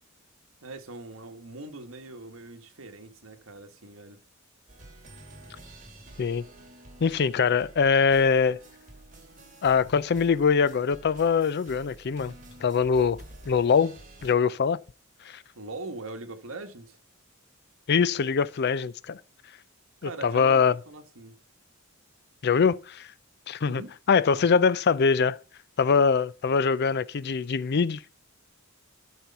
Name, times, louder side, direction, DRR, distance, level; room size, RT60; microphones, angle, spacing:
voice 1, 0.6-4.2 15.2-17.0 20.0-21.4 23.6-23.9, right 2 dB, 70° right, 1.4 m, -41 dB
sound 1, 4.7-14.3, right 1 dB, 40° right, 2.5 m, -49 dB
voice 2, 7.0-8.6 9.6-12.3 12.6-14.8 15.3-15.4 17.9-19.2 20.0-20.7 22.4-23.1 23.5-23.8 24.1-25.4 25.8-28.0, left 5 dB, 50° left, 0.4 m, -23 dB
12.5 x 4.5 x 5.6 m
head